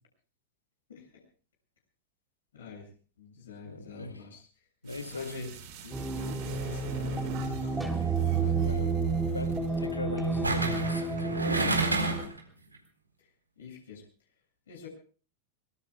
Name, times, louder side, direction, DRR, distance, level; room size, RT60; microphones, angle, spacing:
voice 1, 2.5-2.9 3.2-4.5 5.1-5.5 5.8-8.8 13.6-14.0 14.7-14.9, left 5 dB, 65° left, 0 dB, 7.6 m, -46 dB
voice 2, 3.6-4.1 4.8-5.5 8.6-8.9 9.3-11.5, left 2 dB, 80° left, 7 dB, 2.4 m, -38 dB
sound 1, 4.9-9.9 10.2-10.3, right 4 dB, 45° right, 5.7 m, -44 dB
sound 2, 5.9-12.2, right 4 dB, 5° right, 3.3 m, -30 dB
sound 3, 7.8-8.1 10.4-12.4 12.7-12.8, right 2 dB, 80° right, 4.2 m, -30 dB
25.0 x 23.0 x 2.4 m, 0.40 s
figure-of-eight pair, 90°, 0 cm